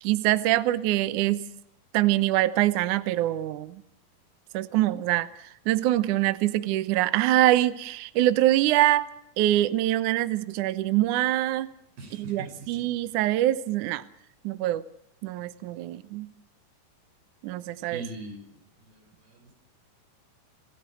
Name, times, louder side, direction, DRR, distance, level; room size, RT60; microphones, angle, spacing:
voice 1, 0.0-1.5 1.9-3.8 4.5-9.1 9.4-11.7 12.1-14.0 14.4-14.8 15.2-16.3 17.4-18.0, right 15 dB, 75° right, 14 dB, 1.8 m, -24 dB
voice 2, 12.0-12.9 17.8-19.5, right 2 dB, 60° right, 3 dB, 7.8 m, -42 dB
27.5 x 15.0 x 7.6 m, 0.76 s
omnidirectional pair, 4.7 m